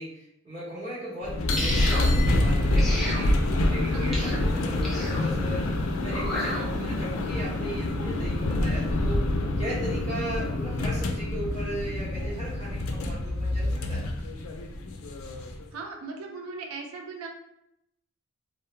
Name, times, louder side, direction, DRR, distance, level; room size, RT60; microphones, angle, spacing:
voice 1, 0.0-5.7 6.0-9.2 9.6-14.1, right 1 dB, 35° right, -11 dB, 0.7 m, -37 dB
sound 1, 1.2-15.7, left 1 dB, 80° left, 0.4 m, -27 dB
sound 2, 1.6-2.1 2.8-3.2 4.1-4.4 4.8-5.2 6.1-6.6, left 1 dB, ahead, 0.4 m, -32 dB
sound 3, 3.0-13.0, equal, 70° right, 0.8 m, -43 dB
voice 2, 3.8-4.3 6.4-6.7 15.2-15.3 15.7-17.3, right 4 dB, 90° right, 2 dB, 0.4 m, -39 dB
2.2 x 2.1 x 3.1 m, 0.80 s
head